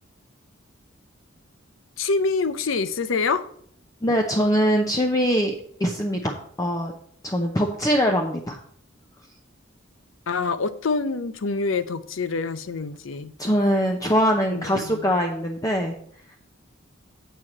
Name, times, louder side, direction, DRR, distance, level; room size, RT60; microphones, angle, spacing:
voice 1, 2.0-3.5 10.3-13.3 14.5-15.0, left 4 dB, 80° left, 0.6 m, -26 dB
voice 2, 4.0-6.9 7.2-8.6 13.4-15.9, equal, 20° left, 0.7 m, -22 dB
8.2 x 4.6 x 7.2 m
head